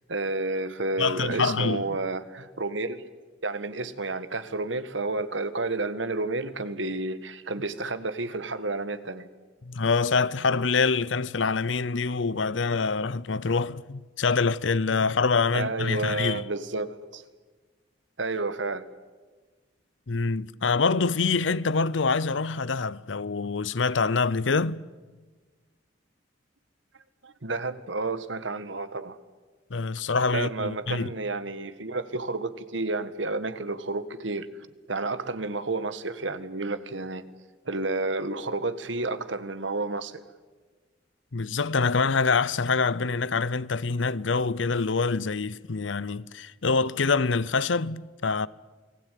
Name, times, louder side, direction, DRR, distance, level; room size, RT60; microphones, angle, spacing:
voice 1, 0.1-3.0 3.4-9.3 15.5-17.2 18.2-18.9 27.2-29.2 30.3-34.5 34.9-37.2 37.6-40.2, right 3 dB, 85° right, 1.5 m, -31 dB
voice 2, 1.0-2.0 9.6-16.4 20.1-24.9 29.7-31.1 41.3-48.5, left 4 dB, 85° left, 0.8 m, -25 dB
29.0 x 20.0 x 9.3 m
head